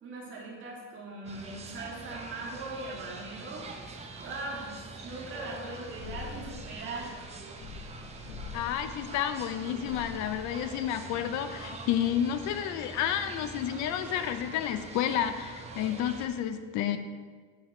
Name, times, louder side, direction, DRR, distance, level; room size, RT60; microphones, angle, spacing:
voice 1, 0.0-3.7 4.2-7.2, right 2 dB, 40° right, -3 dB, 2.4 m, -40 dB
sound 1, 1.3-16.3, right 3 dB, 20° right, 0.8 m, -44 dB
sound 2, 6.0-11.4, left 5 dB, 90° left, 1.5 m, -46 dB
voice 2, 8.5-17.0, left 10 dB, 65° left, 9 dB, 0.7 m, -30 dB
8.3 x 6.7 x 4.4 m, 1.5 s
cardioid pair, 150°, 31 cm